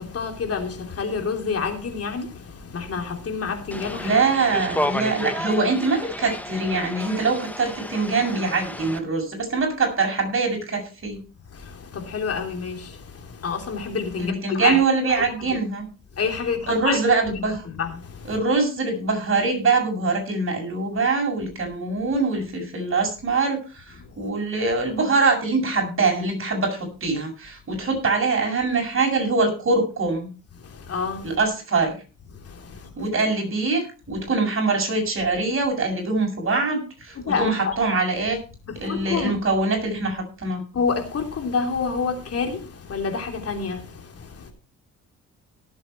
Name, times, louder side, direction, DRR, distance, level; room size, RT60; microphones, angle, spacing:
voice 1, 0.0-4.1 4.8-5.0 11.5-14.8 15.2-15.3 16.2-17.4 17.7-18.3 24.2-24.3 30.6-31.4 32.3-32.9 37.2-37.7 38.7-39.3 40.7-44.5, left 5 dB, 50° left, 3.2 m, -28 dB
sound 1, 3.7-9.0, left 1 dB, 5° left, 1.5 m, -31 dB
voice 2, 4.0-11.2 14.2-15.9 16.7-17.6 18.3-30.3 31.2-31.9 33.0-38.4 38.8-40.6, right 3 dB, 45° right, 7.3 m, -23 dB
17.5 x 8.0 x 4.6 m
cardioid pair, 90°, 30 cm